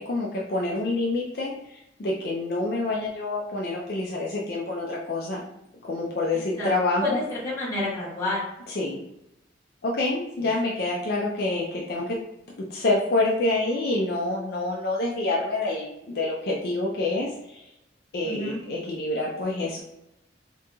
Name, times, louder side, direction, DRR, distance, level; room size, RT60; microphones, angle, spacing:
voice 1, 0.0-5.4 5.9-7.2 8.7-9.0 9.8-12.2 12.7-17.7 18.1-19.8, left 2 dB, 60° left, -3 dB, 0.5 m, -27 dB
voice 2, 7.0-8.5 10.4-10.5 18.2-18.6, left 2 dB, 15° left, -8 dB, 1.3 m, -29 dB
3.9 x 2.8 x 2.3 m, 0.88 s
head